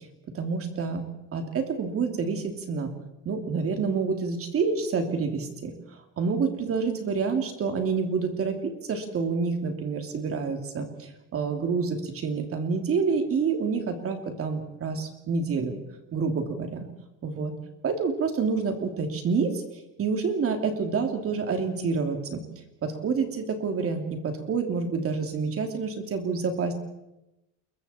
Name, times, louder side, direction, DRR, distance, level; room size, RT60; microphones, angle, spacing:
voice 1, 0.3-1.0 1.3-2.9 3.2-5.7 6.2-15.8 16.1-16.9 17.2-17.5 17.8-19.6 20.0-22.4 22.8-26.7, right 5 dB, 40° right, 5 dB, 3.1 m, -28 dB
29.0 x 22.0 x 4.5 m, 0.92 s
cardioid pair, 155°, 34 cm